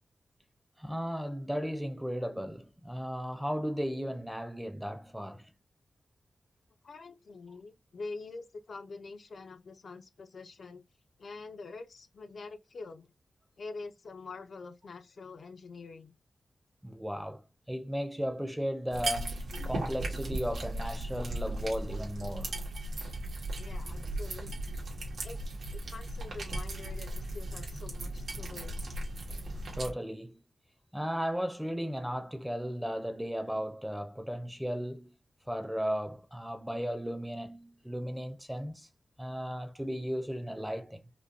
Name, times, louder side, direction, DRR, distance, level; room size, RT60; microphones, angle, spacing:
voice 1, 0.8-5.5 16.8-17.4 17.7-22.6 29.7-30.4 30.9-35.1 35.5-38.9 39.2-41.1, equal, 5° right, 0.6 m, -35 dB
voice 2, 6.8-10.8 11.2-13.1 13.6-16.1 23.6-24.8 25.2-25.4 25.7-28.9, left 3 dB, 60° left, 0.5 m, -45 dB
sound 1, 18.9-29.9, right 1 dB, 85° right, 1.5 m, -37 dB
5.0 x 2.1 x 2.6 m
wide cardioid pair, 160°, 0 cm